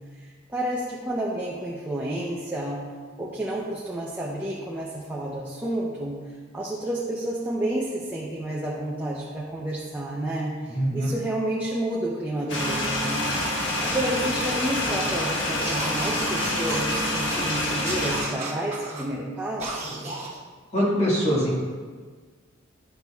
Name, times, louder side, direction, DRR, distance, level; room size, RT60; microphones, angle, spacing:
voice 1, 0.2-2.8 3.2-6.2 6.5-20.1, right 1 dB, 10° right, -4 dB, 0.6 m, -30 dB
voice 2, 10.7-11.1 20.7-21.6, equal, 30° left, -6 dB, 1.7 m, -23 dB
sound 1, 12.5-18.2, left 1 dB, 60° left, 1.4 m, -27 dB
sound 2, 15.6-17.5 17.8-19.1 19.6-20.4, right 3 dB, 30° right, 1.1 m, -34 dB
10.5 x 6.4 x 2.3 m, 1.5 s
head